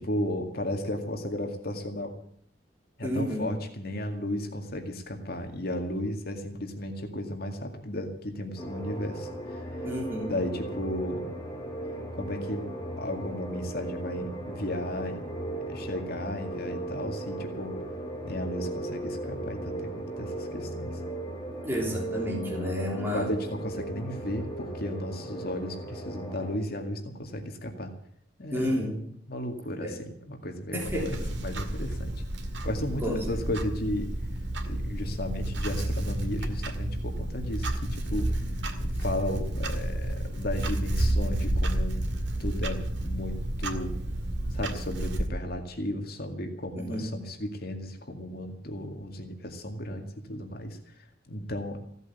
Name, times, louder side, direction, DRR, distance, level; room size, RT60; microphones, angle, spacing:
voice 1, 0.1-2.2 3.0-9.8 10.3-11.3 12.1-12.7 13.0-15.2 15.6-17.8 18.2-21.0 23.1-27.9 28.4-28.8 29.3-30.8 31.0-32.1 32.6-34.1 34.6-38.4 38.8-42.0 42.4-43.9 44.5-50.8 51.3-51.8, left 1 dB, 60° left, 4 dB, 2.2 m, -34 dB
voice 2, 3.0-3.5 9.8-10.4 21.7-23.3 28.5-29.0 29.8-30.0 30.7-31.3 33.0-33.6 46.8-47.0, equal, 15° right, -2 dB, 3.5 m, -31 dB
sound 1, 8.6-26.6, right 1 dB, 20° left, 2.8 m, -37 dB
Clock, 30.8-45.3, right 1 dB, 70° right, 2.1 m, -31 dB
16.5 x 8.1 x 9.9 m, 0.63 s
head